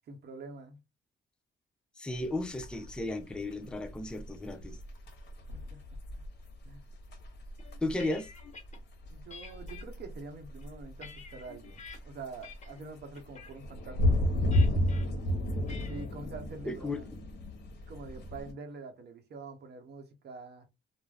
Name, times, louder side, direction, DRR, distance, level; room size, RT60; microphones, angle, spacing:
voice 1, 0.1-0.8 5.5-5.8 6.1-6.2 6.6-6.9 9.1-14.2 15.6-17.1 17.9-20.7, right 3 dB, 55° right, 0.8 m, -46 dB
voice 2, 2.0-4.8 7.8-8.3 16.7-17.0, left 2 dB, 5° left, 0.4 m, -34 dB
sound 1, 2.1-18.5, left 1 dB, 60° left, 0.8 m, -33 dB
sound 2, 7.6-8.8 9.3-9.8 10.4-12.0 12.4-12.8 13.1-13.5 14.5-15.0 15.7-16.1, left 5 dB, 35° left, 1.1 m, -49 dB
2.4 x 2.1 x 3.3 m
cardioid pair, 90°, 20 cm